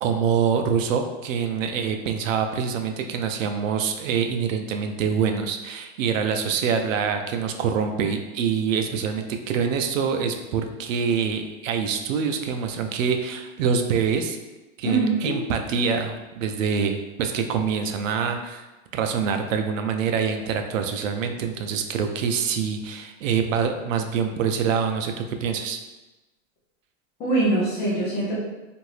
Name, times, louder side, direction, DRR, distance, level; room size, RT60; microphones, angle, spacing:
voice 1, 0.0-14.4 14.8-18.6 18.9-25.8, right 6 dB, 85° right, 5 dB, 0.5 m, -25 dB
voice 2, 14.8-15.4 27.2-28.4, right 2 dB, 15° left, -7 dB, 0.5 m, -23 dB
2.7 x 2.5 x 3.1 m, 1.1 s
supercardioid pair, 160°, 38 cm